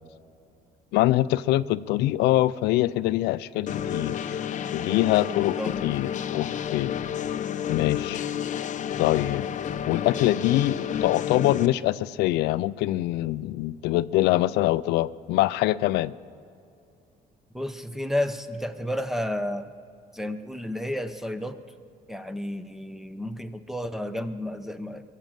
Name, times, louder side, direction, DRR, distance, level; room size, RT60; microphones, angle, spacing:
voice 1, 0.9-4.4 4.7-5.6 5.8-6.9 7.7-8.2 9.0-9.5 9.9-16.1, left 16 dB, 85° left, 16 dB, 0.4 m, -24 dB
sound 1, 3.7-11.7, left 9 dB, 45° left, 0.7 m, -30 dB
voice 2, 5.3-5.8 17.5-19.7 20.1-21.6 22.1-25.0, left 1 dB, ahead, 10 dB, 0.7 m, -31 dB
21.5 x 7.5 x 7.3 m, 2.6 s
cardioid pair, 110°, 17 cm